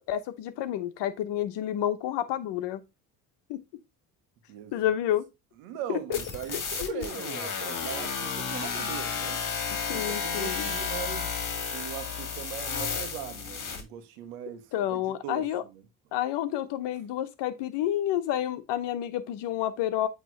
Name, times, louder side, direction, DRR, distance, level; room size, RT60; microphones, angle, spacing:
voice 1, 0.1-2.8 3.5-3.6 4.7-5.3 6.8-7.0 9.9-10.7 14.7-15.6 16.1-20.1, left 12 dB, 70° left, 1.1 m, -29 dB
voice 2, 4.5-4.9 5.6-9.4 9.9-11.3 11.7-15.8, right 10 dB, 85° right, 1.3 m, -40 dB
sound 1, 6.1-13.8, left 6 dB, 45° left, 2.1 m, -32 dB
8.4 x 3.4 x 4.5 m
hypercardioid pair, 60°, 44 cm